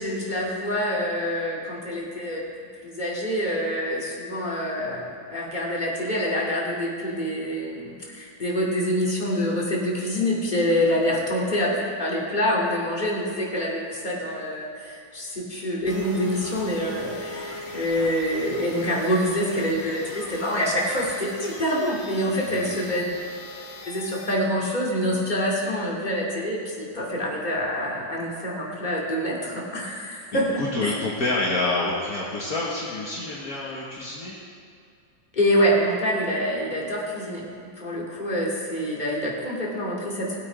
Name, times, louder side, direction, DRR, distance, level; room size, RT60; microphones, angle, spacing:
voice 1, 0.0-2.4 2.8-23.0 23.9-30.9 35.3-37.5 37.8-40.4, equal, 25° left, -4 dB, 2.5 m, -26 dB
sound 1, 15.9-24.3, left 2 dB, 85° left, 2.4 m, -39 dB
voice 2, 22.4-22.8 30.6-34.4, left 2 dB, 55° left, -5 dB, 1.8 m, -28 dB
18.5 x 8.3 x 5.1 m, 2.4 s
omnidirectional pair, 2.0 m